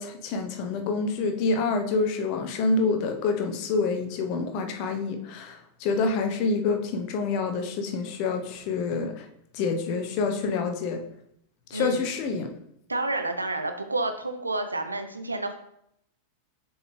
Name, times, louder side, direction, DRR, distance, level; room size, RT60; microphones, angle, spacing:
voice 1, 0.0-9.3 9.5-11.0 11.7-12.5, left 4 dB, 45° left, 5 dB, 0.9 m, -27 dB
voice 2, 11.7-12.1 12.9-15.6, right 2 dB, 80° right, 7 dB, 0.7 m, -29 dB
6.9 x 4.5 x 3.3 m, 0.74 s
figure-of-eight pair, 90°, 0 cm